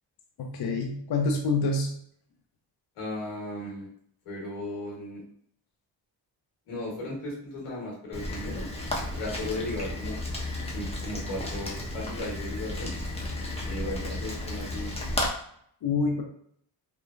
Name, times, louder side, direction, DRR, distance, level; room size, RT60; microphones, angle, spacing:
voice 1, 0.4-2.0 15.8-16.2, left 3 dB, 50° left, 1 dB, 0.6 m, -27 dB
voice 2, 3.0-3.9 4.2-5.2 6.7-8.7 9.2-10.2 10.7-12.9 13.6-14.9, left 1 dB, 85° left, -3 dB, 1.3 m, -36 dB
Rain, 8.1-15.3, left 1 dB, 10° left, 0.8 m, -33 dB
3.1 x 2.1 x 2.3 m, 0.67 s
supercardioid pair, 55°, 50 cm